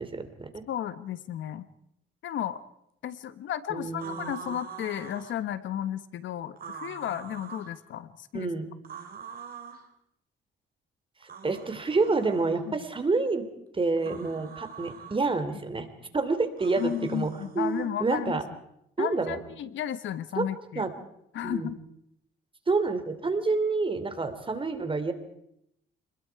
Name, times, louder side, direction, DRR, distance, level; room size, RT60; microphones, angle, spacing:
voice 1, 0.0-0.5 3.7-4.5 8.3-8.7 11.4-13.4 13.7-15.9 16.1-18.4 19.0-19.4 20.3-20.5 20.7-20.9 21.4-21.7 22.7-25.1, right 3 dB, 25° right, 9 dB, 3.0 m, -28 dB
voice 2, 0.7-1.7 2.2-2.6 3.0-8.5 12.7-12.8 16.8-18.4 19.0-20.9 21.3-21.8, left 10 dB, 75° left, 14 dB, 1.2 m, -33 dB
sound 1, 4.0-5.4 6.6-7.7 8.8-9.9 11.2-12.6 14.0-15.2 16.6-17.9, right 6 dB, 45° right, 3.3 m, -44 dB
26.5 x 21.0 x 4.7 m, 0.78 s
cardioid pair, 90°, 20 cm